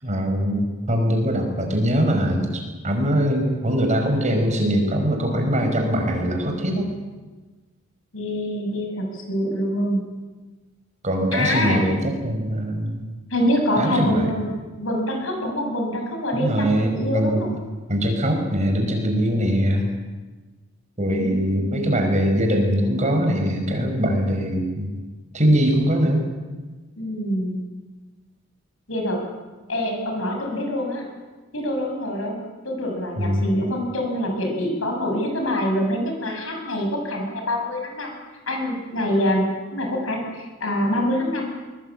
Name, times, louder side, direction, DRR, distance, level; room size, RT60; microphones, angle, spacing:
voice 1, 0.0-6.9 11.0-13.0 13.8-14.3 16.3-17.5 17.9-19.9 21.0-24.9 25.3-26.3 33.2-33.6, equal, 35° right, 3 dB, 5.3 m, -22 dB
voice 2, 8.1-10.0 11.3-11.9 13.3-14.5 14.8-17.5 21.0-22.0 26.9-27.6 28.9-29.2 29.7-31.1 31.5-32.4 32.6-38.2 38.5-39.5 39.7-41.5, equal, 85° left, 2 dB, 7.6 m, -25 dB
22.5 x 22.0 x 8.8 m, 1.3 s
head